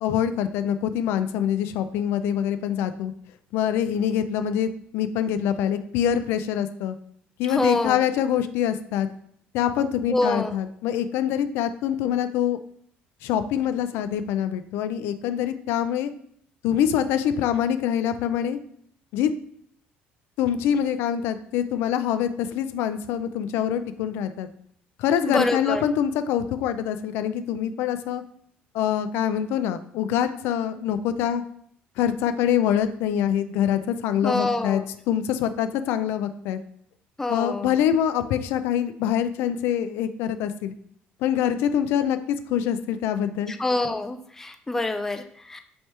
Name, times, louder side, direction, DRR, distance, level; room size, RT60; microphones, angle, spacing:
voice 1, 0.0-3.1 3.5-7.0 7.4-9.1 9.5-12.6 13.2-16.1 16.6-18.6 19.1-19.3 20.4-24.5 25.0-28.2 28.7-31.4 32.0-36.6 37.3-40.7 41.2-43.5, left 9 dB, 85° left, 10 dB, 0.3 m, -25 dB
voice 2, 7.5-8.0 10.1-10.5 25.3-25.8 34.2-34.8 37.2-37.7 43.5-45.6, left 2 dB, 10° left, 7 dB, 0.3 m, -26 dB
3.2 x 2.9 x 4.5 m, 0.66 s
cardioid pair, 125°, 4 cm